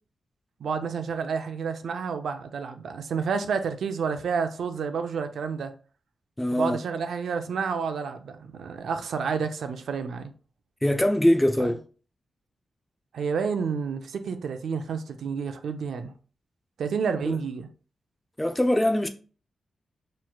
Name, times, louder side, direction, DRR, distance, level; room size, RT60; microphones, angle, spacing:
voice 1, 0.6-5.7 6.5-10.3 11.6-11.7 13.1-16.1 16.8-17.7, right 6 dB, 85° right, 0.5 m, -30 dB
voice 2, 6.4-6.8 10.8-11.8 17.2-17.4 18.4-19.1, left 1 dB, 10° left, 0.4 m, -22 dB
5.7 x 3.2 x 2.3 m
wide cardioid pair, 130°, 0 cm